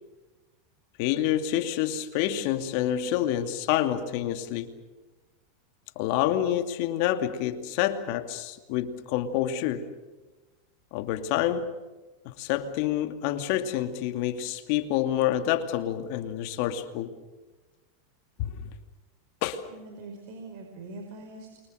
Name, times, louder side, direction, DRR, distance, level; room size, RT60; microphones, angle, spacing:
voice 1, 1.0-4.7 6.0-9.9 10.9-11.7 12.2-17.1 18.4-18.6 19.4-19.6, left 11 dB, 60° left, 8 dB, 2.5 m, -28 dB
voice 2, 19.7-21.6, right 2 dB, 60° right, 3 dB, 5.2 m, -43 dB
29.0 x 24.5 x 6.6 m, 1.2 s
hypercardioid pair, 110°, 0 cm